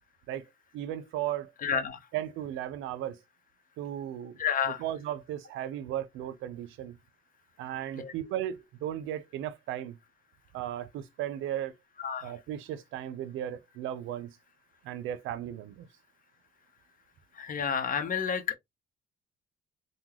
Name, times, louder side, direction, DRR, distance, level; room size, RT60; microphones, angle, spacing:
voice 1, 0.7-1.5 2.1-3.2 3.8-4.4 4.7-7.0 7.6-10.0 10.5-11.7 12.2-14.4 14.8-15.9, right 11 dB, 90° right, 0.5 m, -36 dB
voice 2, 1.6-2.0 4.4-4.8 8.0-8.1 12.0-12.3 17.4-18.6, left 7 dB, 45° left, 0.9 m, -30 dB
3.6 x 2.2 x 3.0 m
cardioid pair, 90°, 20 cm